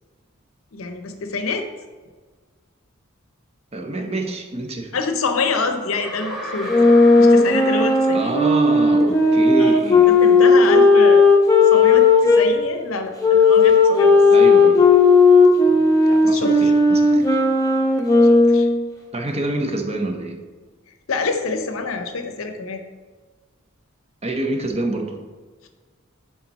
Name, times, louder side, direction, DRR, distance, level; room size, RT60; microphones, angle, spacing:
voice 1, 0.7-1.7 4.9-6.7 7.2-8.3 9.6-9.8 10.1-11.4 11.6-14.2 15.7-15.8 16.1-16.7 18.3-18.7 21.1-22.8, left 4 dB, 75° left, 7 dB, 0.7 m, -26 dB
voice 2, 3.7-5.0 8.1-10.1 14.3-14.9 16.3-17.4 19.1-20.4 24.2-25.2, right 2 dB, 30° right, 4 dB, 0.7 m, -26 dB
sound 1, 5.9-9.0, equal, ahead, 1.1 m, -35 dB
sound 2, 6.7-12.5 13.2-18.8, left 3 dB, 15° left, 0.7 m, -14 dB
7.2 x 3.8 x 4.1 m, 1.4 s
head